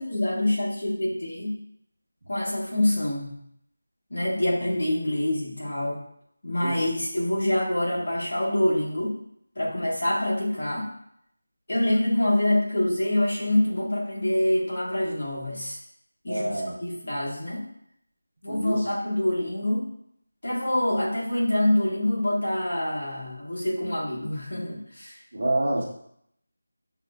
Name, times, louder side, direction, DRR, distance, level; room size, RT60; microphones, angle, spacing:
voice 1, 0.0-1.5 2.3-3.3 4.1-6.0 6.4-9.1 9.5-10.9 11.7-15.8 16.2-17.6 18.4-19.9 20.4-25.2, left 1 dB, 60° left, -5 dB, 1.5 m, -26 dB
voice 2, 16.3-16.7 18.5-18.9 25.3-25.8, right 1 dB, 50° right, -3 dB, 1.0 m, -27 dB
6.2 x 2.4 x 2.2 m, 0.71 s
figure-of-eight pair, 175°, 0 cm